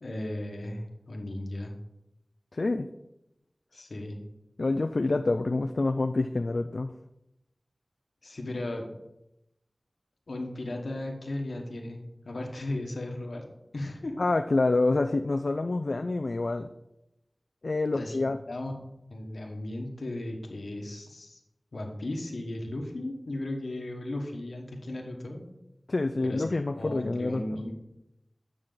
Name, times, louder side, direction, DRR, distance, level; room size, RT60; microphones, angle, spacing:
voice 1, 0.0-1.7 3.7-4.2 8.2-8.9 10.3-13.4 13.7-14.2 17.9-18.2 18.5-18.7 19.1-21.4 21.7-25.4 26.2-27.7, left 1 dB, 90° left, 2 dB, 1.3 m, -36 dB
voice 2, 2.5-2.9 4.6-6.9 14.2-16.7 17.6-18.4 25.9-27.4, left 2 dB, 70° left, 7 dB, 0.3 m, -27 dB
8.8 x 6.1 x 3.9 m, 0.88 s
wide cardioid pair, 45°, 0 cm